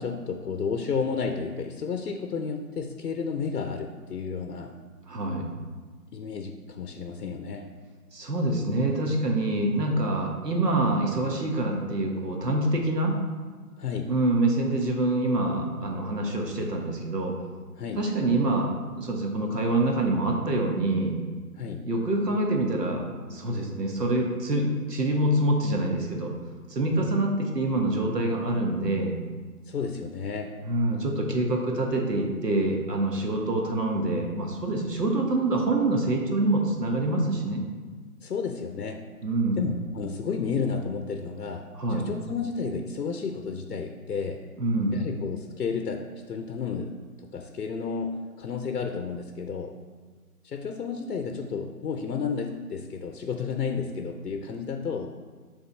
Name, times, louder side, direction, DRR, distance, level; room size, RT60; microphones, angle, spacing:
voice 1, 0.0-4.7 6.1-7.7 13.8-14.1 17.8-18.0 21.6-21.9 26.9-27.2 29.6-30.5 38.2-39.0 39.5-44.4 44.9-49.8 50.4-55.1, left 5 dB, 85° left, 5 dB, 0.7 m, -32 dB
voice 2, 5.1-5.5 8.1-13.2 14.1-17.3 18.0-18.7 18.9-21.2 21.8-26.3 26.7-29.1 30.6-37.6 39.2-39.7 41.7-42.1 44.6-45.0, right 2 dB, 90° right, 1 dB, 1.4 m, -26 dB
6.0 x 3.5 x 5.3 m, 1.4 s
figure-of-eight pair, 165°, 47 cm